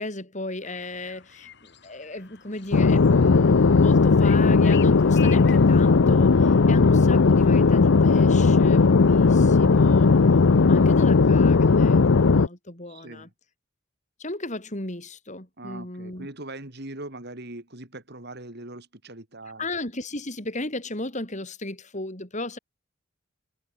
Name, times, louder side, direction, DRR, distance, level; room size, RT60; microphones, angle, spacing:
voice 1, 0.0-10.1 10.7-13.3 14.2-16.3 19.6-22.6, left 2 dB, 35° left, 5.2 m, -35 dB
sound 1, 0.6-5.7, left 10 dB, 60° left, 6.1 m, -45 dB
sound 2, 2.7-12.5, left 4 dB, 75° left, 0.6 m, -17 dB
voice 2, 12.9-13.3 15.6-19.7, right 2 dB, 55° right, 4.0 m, -40 dB
head